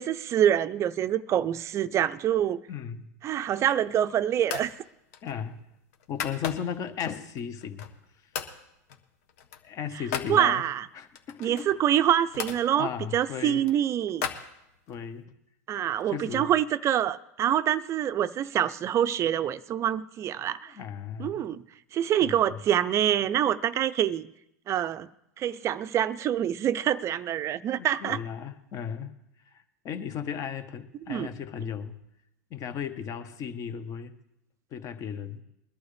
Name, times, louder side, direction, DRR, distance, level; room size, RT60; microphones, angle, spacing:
voice 1, 0.0-2.6 3.2-4.7 10.3-10.9 11.4-14.3 15.7-20.7 21.2-21.6 21.9-24.3 24.7-25.1 25.4-28.2 31.1-31.3, right 10 dB, 30° right, 0.5 m, -26 dB
voice 2, 2.7-3.1 5.2-5.6 6.1-7.9 9.6-10.6 10.9-11.7 12.7-13.6 14.9-15.3 16.1-16.5 20.7-21.4 22.2-22.6 27.6-29.1 29.8-32.0 32.5-34.1 34.7-35.4, left 8 dB, 40° left, 1.3 m, -35 dB
sound 1, 3.4-4.0 4.4-4.8 5.1-6.9 7.4-8.0 8.3-8.6 8.9-10.3 11.1-12.6 13.2-15.0, left 8 dB, 65° left, 1.5 m, -37 dB
22.0 x 11.5 x 3.4 m
hypercardioid pair, 115°, 9 cm